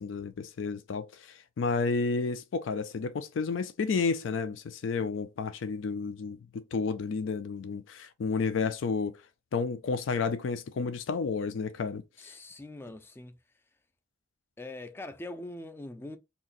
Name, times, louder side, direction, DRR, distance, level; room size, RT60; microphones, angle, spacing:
voice 1, 0.0-9.2 9.5-12.0, left 4 dB, 85° left, 0.4 m, -31 dB
voice 2, 12.2-13.4 14.6-16.2, left 2 dB, 10° left, 0.3 m, -42 dB
2.8 x 2.5 x 3.9 m
head